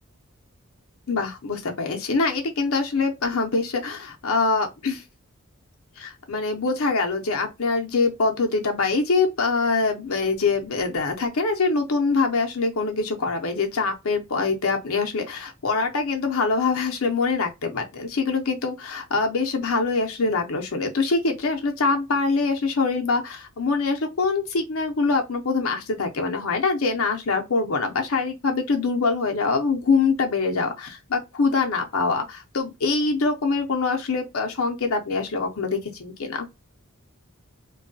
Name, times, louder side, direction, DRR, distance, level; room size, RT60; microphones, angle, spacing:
voice 1, 1.1-5.0 6.0-36.5, left 4 dB, 70° left, 0.7 m, -24 dB
2.7 x 2.3 x 2.6 m
head